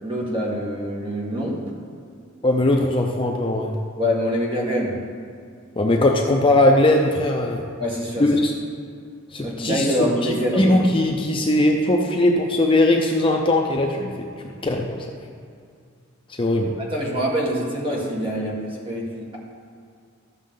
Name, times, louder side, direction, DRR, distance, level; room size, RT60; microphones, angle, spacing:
voice 1, 0.0-1.6 4.0-5.0 7.8-8.3 9.4-10.8 16.9-19.4, equal, 25° right, -3 dB, 1.7 m, -25 dB
voice 2, 2.4-3.8 5.8-7.7 8.2-8.5 9.3-14.3 14.6-15.1 16.3-16.7, left 1 dB, 25° left, 1 dB, 0.6 m, -20 dB
13.5 x 6.3 x 3.8 m, 2.3 s
head